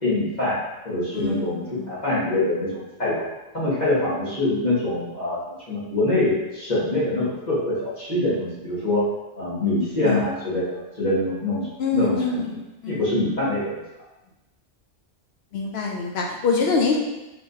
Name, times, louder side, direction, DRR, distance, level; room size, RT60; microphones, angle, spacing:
voice 1, 0.0-0.6 0.8-3.2 3.5-5.4 5.7-9.0 9.4-11.7 11.9-12.4 12.9-13.8, left 2 dB, 35° left, -10 dB, 1.5 m, -24 dB
voice 2, 1.2-1.9 10.0-10.3 11.8-13.1 15.5-17.0, left 4 dB, 65° left, 0 dB, 0.8 m, -25 dB
4.2 x 3.7 x 2.7 m, 1.0 s
omnidirectional pair, 1.2 m